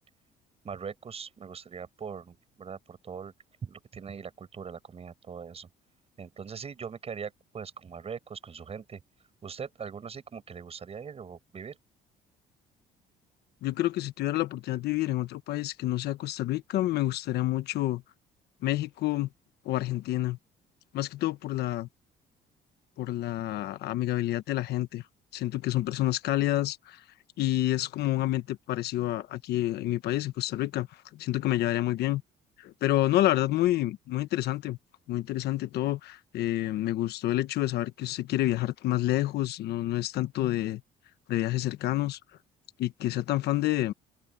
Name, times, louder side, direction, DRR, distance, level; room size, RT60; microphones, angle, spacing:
voice 1, 0.6-3.3 3.6-5.7 6.2-9.0 9.4-11.8, right 6 dB, 35° right, 7.4 m, -41 dB
voice 2, 13.6-18.0 18.6-19.3 19.6-20.4 20.9-21.9 23.0-25.0 25.3-27.0 27.4-30.9 31.1-32.2 32.6-34.8 35.1-40.8 41.3-42.2 42.8-43.9, left 15 dB, 75° left, 1.2 m, -28 dB
cardioid pair, 110°, 17 cm